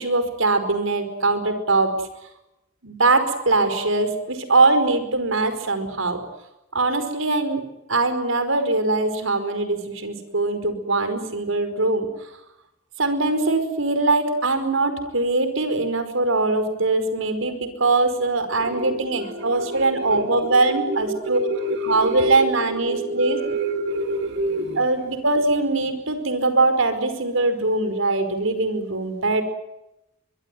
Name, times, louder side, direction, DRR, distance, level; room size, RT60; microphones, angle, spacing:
voice 1, 0.0-1.9 2.8-6.2 6.7-7.6 7.9-12.1 13.0-21.4 21.8-23.4 24.7-29.4, right 3 dB, 85° right, 10 dB, 5.1 m, -22 dB
voice 2, 18.5-24.8, right 1 dB, 55° right, 4 dB, 2.2 m, -28 dB
24.0 x 22.5 x 9.4 m, 0.90 s
head